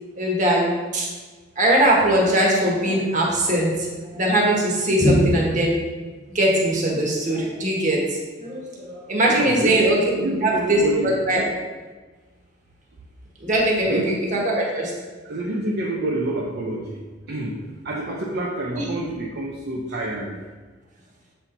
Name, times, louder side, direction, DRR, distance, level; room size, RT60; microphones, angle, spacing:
voice 1, 0.2-1.1 1.6-5.7 6.3-8.0 8.4-10.1 10.4-11.4 13.4-14.8 18.7-18.9, right 1 dB, 40° right, -3 dB, 1.5 m, -20 dB
voice 2, 9.3-9.9 10.2-11.5 13.9-14.2 15.2-17.6 17.8-20.4, right 1 dB, 55° right, -3 dB, 0.7 m, -28 dB
7.6 x 4.4 x 4.0 m, 1.3 s
head